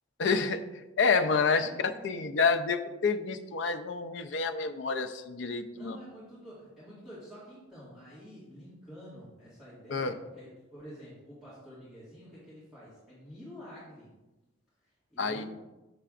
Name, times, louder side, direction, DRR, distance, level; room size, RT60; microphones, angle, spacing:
voice 1, 0.2-0.6 1.0-1.7 2.0-6.0 9.9-10.1 15.2-15.5, left 5 dB, 70° left, 8 dB, 0.5 m, -28 dB
voice 2, 1.4-2.3 5.7-14.1 15.1-15.5, equal, ahead, -12 dB, 1.8 m, -49 dB
6.7 x 6.6 x 2.5 m, 1.1 s
head